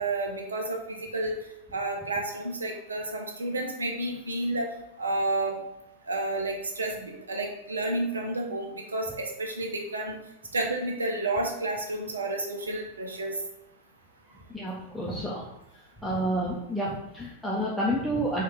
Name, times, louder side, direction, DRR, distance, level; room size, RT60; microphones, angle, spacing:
voice 1, 0.0-1.4 1.7-4.7 5.0-5.6 6.1-10.2 10.5-13.4, right 2 dB, 75° right, 2 dB, 0.6 m, -30 dB
voice 2, 14.5-15.4 16.0-18.4, right 1 dB, ahead, -6 dB, 0.6 m, -29 dB
4.2 x 2.4 x 3.4 m, 0.86 s
figure-of-eight pair, 90°, 0 cm